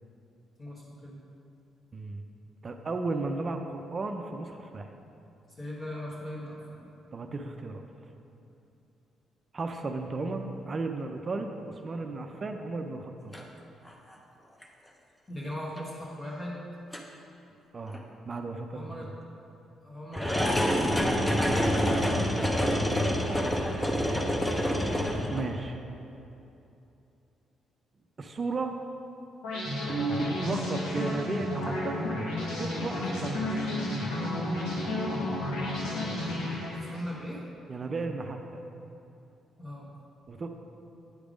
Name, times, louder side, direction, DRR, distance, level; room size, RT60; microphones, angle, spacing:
voice 1, 0.6-1.2 5.6-6.9 15.3-16.6 18.7-19.1 19.8-20.9 36.2-37.4 39.6-39.9, left 1 dB, 30° left, -7 dB, 1.2 m, -39 dB
voice 2, 1.9-2.2 2.6-4.9 7.1-7.8 9.5-11.5 11.8-13.3 17.7-18.0 18.2-19.1 20.1-20.2 21.1-21.6 25.3-25.8 28.2-28.7 29.9-32.0 32.3-33.6 37.7-38.6 40.3-40.5, right 3 dB, 35° right, 5 dB, 0.5 m, -34 dB
sound 1, 13.3-13.4 13.9-14.1 14.6-14.7 15.8-15.9 16.9-17.0 17.9-18.0 20.1-25.6, equal, 10° left, 0.7 m, -27 dB
sound 2, 29.4-37.1, left 1 dB, 90° left, 1.5 m, -32 dB
9.4 x 3.5 x 5.0 m, 2.8 s
cardioid pair, 90°, 0 cm